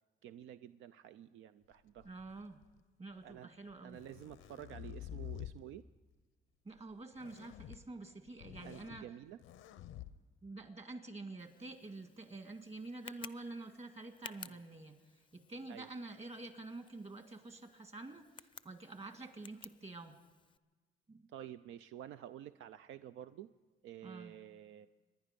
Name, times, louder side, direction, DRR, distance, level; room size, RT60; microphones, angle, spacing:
voice 1, 0.2-2.1 3.2-3.5 3.8-5.9 8.6-9.4 14.4-14.6 15.7-15.9 21.3-23.5 23.8-24.9, right 11 dB, 80° right, 12 dB, 0.4 m, -50 dB
sound 1, 2.0-2.8 3.7-5.6 7.1-7.8 8.3-9.0 9.4-10.1, left 12 dB, 85° left, 0.7 m, -48 dB
voice 2, 2.0-2.6 3.0-4.0 6.6-9.0 10.4-20.2 21.1-21.3 24.0-24.4, right 2 dB, 30° right, 7 dB, 1.8 m, -48 dB
Tick, 11.4-20.6, left 5 dB, 25° left, 0.5 m, -56 dB
26.0 x 10.5 x 5.2 m, 1.3 s
cardioid pair, 90°, 20 cm